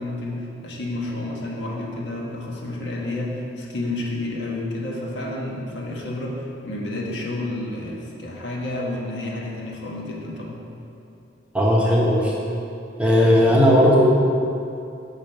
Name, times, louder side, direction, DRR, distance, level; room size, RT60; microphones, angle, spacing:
voice 1, 0.0-10.6, left 2 dB, 70° left, -2 dB, 1.1 m, -30 dB
voice 2, 11.5-12.3 13.0-14.1, equal, 5° right, -4 dB, 0.8 m, -16 dB
5.7 x 5.1 x 6.3 m, 2.6 s
head